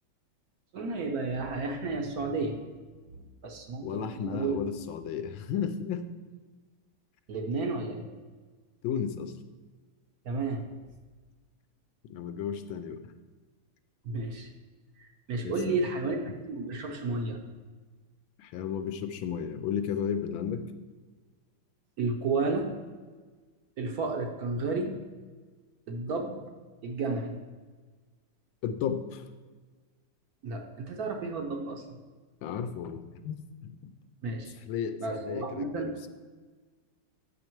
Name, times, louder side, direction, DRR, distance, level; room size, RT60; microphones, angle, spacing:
voice 1, 0.7-2.6 3.1-4.6 7.3-8.0 10.2-10.6 14.0-14.5 15.0-17.4 22.0-22.7 23.8-25.0 25.9-26.4 26.8-27.3 30.4-32.0 34.2-34.6 35.0-36.0, right 3 dB, 60° right, 3 dB, 1.0 m, -32 dB
voice 2, 3.8-6.1 8.8-9.4 12.0-13.1 15.4-15.9 18.4-20.7 28.6-29.2 32.4-33.8 34.7-36.1, left 8 dB, 75° left, 9 dB, 1.3 m, -34 dB
9.1 x 6.5 x 4.5 m, 1.4 s
omnidirectional pair, 2.4 m